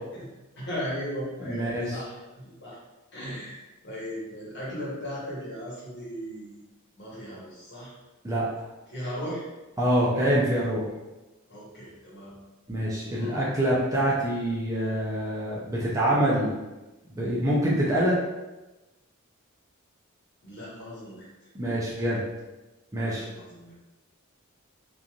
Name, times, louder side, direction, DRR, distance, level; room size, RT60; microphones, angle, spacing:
voice 1, 0.6-2.8 3.1-6.6 7.0-7.9 8.9-9.5 11.5-12.4 13.1-13.4 20.4-21.5 23.0-23.7, equal, 50° left, -7 dB, 1.1 m, -37 dB
voice 2, 1.4-2.0 8.2-8.6 9.8-10.9 12.7-16.5 17.1-18.1 21.5-22.2 22.9-23.2, right 1 dB, 15° right, -6 dB, 0.5 m, -25 dB
3.0 x 2.5 x 2.4 m, 1.1 s
head